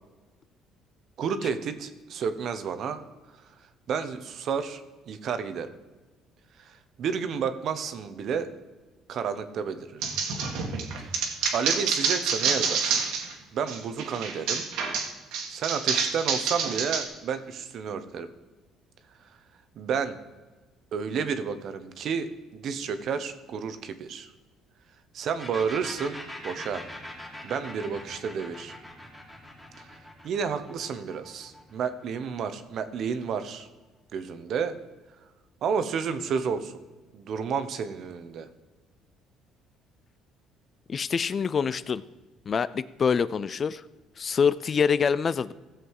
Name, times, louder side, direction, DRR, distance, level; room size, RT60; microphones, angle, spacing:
voice 1, 1.2-3.0 3.9-5.7 6.6-8.5 9.1-10.0 11.0-11.1 11.5-13.1 13.5-14.6 15.5-18.3 19.8-20.2 20.9-24.3 25.1-26.9 27.4-28.7 29.8-29.9 30.2-33.7 34.1-34.8 35.6-36.8 37.1-38.5, right 6 dB, 50° right, 11 dB, 0.9 m, -31 dB
sound 1, 10.0-13.3 13.7-17.0, right 5 dB, 80° right, 1.9 m, -28 dB
sound 2, 25.4-32.9, left 1 dB, 5° left, 2.3 m, -43 dB
voice 2, 40.9-42.0 42.5-43.8 44.2-45.5, left 6 dB, 30° left, 17 dB, 0.3 m, -25 dB
16.0 x 7.6 x 4.8 m, 1.2 s
cardioid pair, 145°, 0 cm